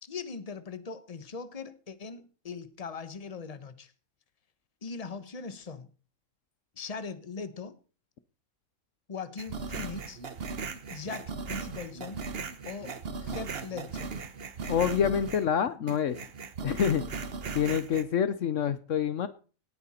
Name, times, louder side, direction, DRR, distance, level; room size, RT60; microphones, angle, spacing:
voice 1, 0.0-3.9 4.8-5.9 6.8-7.8 9.1-10.2 10.9-12.2 12.6-14.1, left 5 dB, 30° left, 1.2 m, -40 dB
sound 1, 9.4-15.5 15.9-18.0, right 4 dB, 50° right, 1.2 m, -38 dB
voice 2, 14.7-16.2 16.6-17.0 17.5-19.3, left 8 dB, 65° left, 1.1 m, -27 dB
18.0 x 9.0 x 4.3 m
omnidirectional pair, 1.4 m